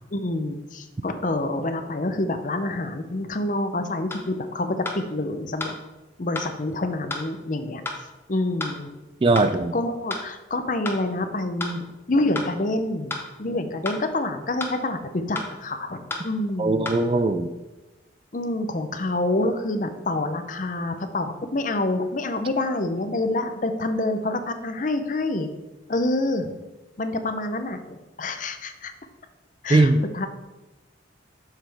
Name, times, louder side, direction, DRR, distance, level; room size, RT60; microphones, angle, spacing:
voice 1, 0.1-5.8 6.2-7.8 8.3-8.9 9.7-16.9 18.3-25.5 25.9-26.5 27.0-28.9 29.6-30.3, left 2 dB, 40° left, 8 dB, 0.6 m, -27 dB
sound 1, 4.1-4.2 4.8-5.0 5.6-5.8 6.3-6.5 7.1-7.2 7.8-8.0 8.6-8.7 9.3-9.5 10.1-10.2 10.8-11.0 11.6-11.8 12.3-12.5 13.1-13.2 13.8-14.0 14.6-14.8 15.3-15.5 16.1-16.3 16.8-17.0, left 2 dB, 10° left, 0.8 m, -31 dB
voice 2, 9.2-9.7 16.6-17.5 29.7-30.0, right 2 dB, 30° right, 10 dB, 0.3 m, -19 dB
7.6 x 6.6 x 3.4 m, 1.1 s
head